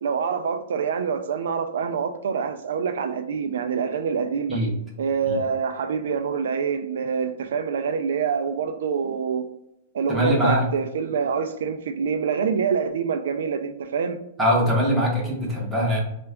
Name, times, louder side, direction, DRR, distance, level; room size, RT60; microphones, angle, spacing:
voice 1, 0.0-4.6 5.0-9.5 9.9-14.2, right 6 dB, 70° right, 0.3 m, -26 dB
voice 2, 10.1-10.7 14.4-16.0, equal, ahead, 0.7 m, -22 dB
3.4 x 2.2 x 3.5 m
supercardioid pair, 180°, 0 cm